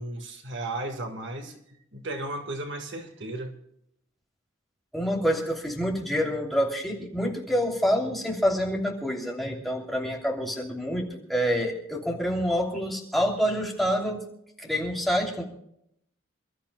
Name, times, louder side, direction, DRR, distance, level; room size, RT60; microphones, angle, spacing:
voice 1, 0.0-1.6 1.9-3.6, right 2 dB, 55° right, 4 dB, 1.8 m, -34 dB
voice 2, 4.9-14.2 14.6-15.4, equal, ahead, -2 dB, 2.9 m, -27 dB
28.5 x 13.5 x 2.3 m, 0.75 s
head